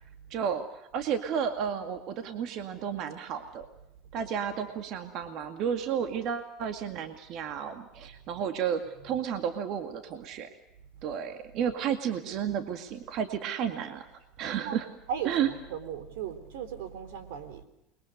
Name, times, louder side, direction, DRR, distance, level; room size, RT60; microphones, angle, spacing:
voice 1, 0.3-3.7 4.1-10.5 11.0-14.1 14.4-14.9 15.2-15.5, right 8 dB, 45° right, 2.2 m, -32 dB
voice 2, 15.1-17.6, right 8 dB, 85° right, 4.0 m, -37 dB
29.0 x 22.5 x 6.6 m
cardioid pair, 155°, 0 cm